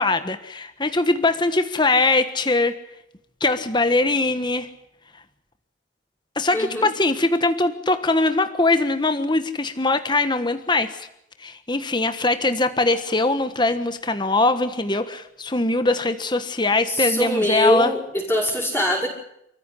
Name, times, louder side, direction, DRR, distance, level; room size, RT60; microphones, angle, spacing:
voice 1, 0.0-2.8 3.4-4.7 5.1-5.2 6.3-11.1 11.4-17.9, left 2 dB, 25° left, 9 dB, 1.4 m, -21 dB
voice 2, 6.5-6.9 16.9-19.1, left 1 dB, 10° left, -7 dB, 6.3 m, -22 dB
28.5 x 15.0 x 9.9 m, 0.80 s
head